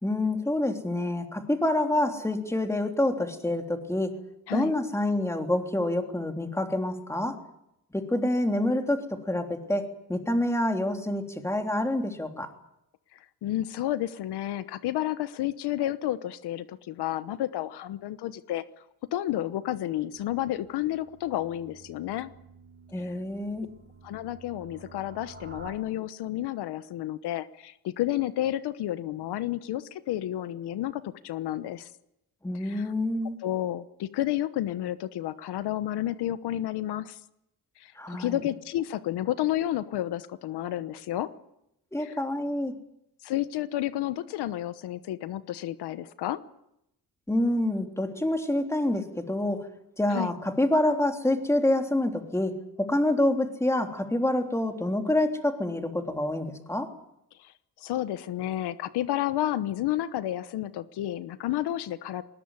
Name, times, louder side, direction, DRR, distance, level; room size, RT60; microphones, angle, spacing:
voice 1, 0.0-4.2 4.5-7.4 7.9-12.5 22.9-23.7 32.4-33.4 37.9-38.4 41.9-42.7 47.3-49.7 50.0-56.9, left 1 dB, 5° left, 4 dB, 3.3 m, -27 dB
voice 2, 13.1-18.6 19.1-22.3 23.0-23.1 24.0-31.9 32.6-32.9 33.4-37.2 37.8-41.3 42.0-42.1 43.2-46.4 50.1-50.3 57.4-62.2, left 13 dB, 85° left, 13 dB, 1.1 m, -31 dB
sound 1, 20.2-25.7, right 3 dB, 30° right, 6.2 m, -50 dB
20.5 x 20.0 x 9.8 m, 0.83 s
cardioid pair, 105°, 39 cm